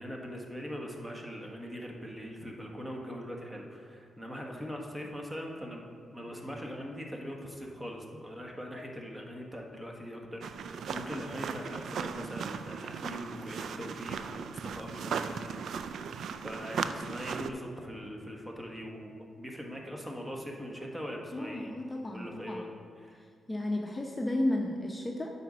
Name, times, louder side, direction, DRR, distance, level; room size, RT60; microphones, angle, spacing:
voice 1, 0.0-5.8 6.1-16.0 16.4-21.8 22.1-22.7 23.0-23.2, equal, 15° right, 0 dB, 1.4 m, -41 dB
sound 1, 10.4-17.5, right 6 dB, 75° right, 0.3 m, -37 dB
voice 2, 21.3-22.6 23.5-25.3, left 1 dB, 20° left, 0 dB, 0.8 m, -33 dB
9.0 x 4.2 x 6.3 m, 2.2 s
cardioid pair, 65°, 0 cm